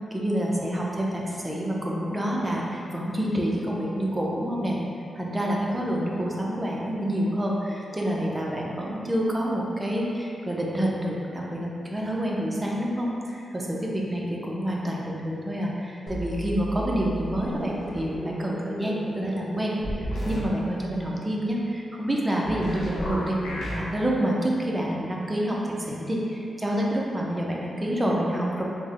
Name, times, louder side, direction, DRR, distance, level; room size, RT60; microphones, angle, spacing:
voice 1, 0.1-4.8 5.1-28.6, equal, 20° right, -3 dB, 0.5 m, -28 dB
sound 1, 16.1-20.8, right 1 dB, 60° left, 1.1 m, -37 dB
sound 2, 19.8-20.5 22.4-23.8, equal, 90° left, 0.8 m, -32 dB
3.1 x 2.1 x 3.7 m, 2.6 s
cardioid pair, 95°, 0 cm